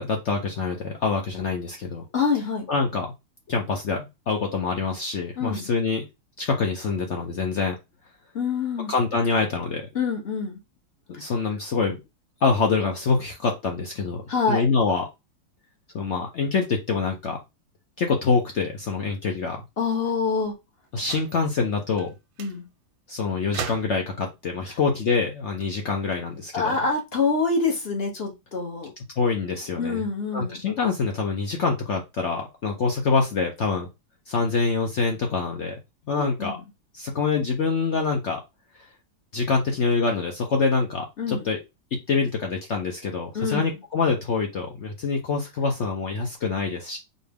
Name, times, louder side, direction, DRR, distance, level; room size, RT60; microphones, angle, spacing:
voice 1, 0.0-2.1 2.7-3.1 3.5-6.1 6.4-7.7 8.9-9.9 11.1-12.0 12.4-15.0 15.9-17.4 18.0-19.6 20.9-22.1 23.1-26.8 29.2-30.0 30.3-33.9 34.3-35.8 36.1-36.6 36.9-38.4 39.3-41.6 41.9-47.0, left 4 dB, 70° left, 2 dB, 0.6 m, -25 dB
voice 2, 2.1-2.7 5.4-5.7 8.3-8.9 9.9-10.6 14.3-14.7 19.8-20.5 22.4-22.7 24.7-24.8 26.5-28.9 29.8-30.6 36.2-36.6 41.2-41.5 43.3-43.7, left 4 dB, 40° left, 2 dB, 0.9 m, -26 dB
sound 1, 21.0-21.5 22.0-22.1 22.4-22.6 23.5-24.2 25.4-26.5, right 9 dB, 90° right, 1.4 m, -38 dB
4.2 x 2.7 x 3.4 m, 0.23 s
omnidirectional pair, 2.1 m